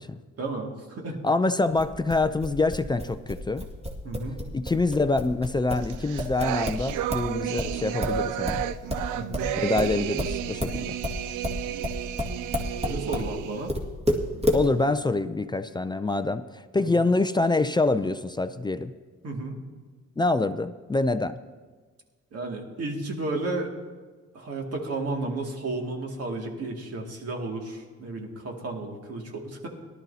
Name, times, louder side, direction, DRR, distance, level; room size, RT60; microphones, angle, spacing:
voice 1, 0.4-1.2 4.0-4.4 9.1-9.5 12.8-13.7 16.8-17.0 19.2-19.6 22.3-23.7 24.3-29.7, right 2 dB, 55° right, 1 dB, 2.3 m, -33 dB
voice 2, 1.2-3.6 4.5-8.6 9.6-10.9 14.5-18.9 20.2-21.4, left 2 dB, 15° left, 10 dB, 0.4 m, -25 dB
sound 1, 1.8-7.3 7.6-13.3 13.7-14.7, left 1 dB, 20° right, 2.0 m, -30 dB
sound 2, 5.8-13.7, right 11 dB, 85° right, 0.5 m, -32 dB
18.0 x 12.0 x 2.8 m, 1.4 s
cardioid pair, 90°, 30 cm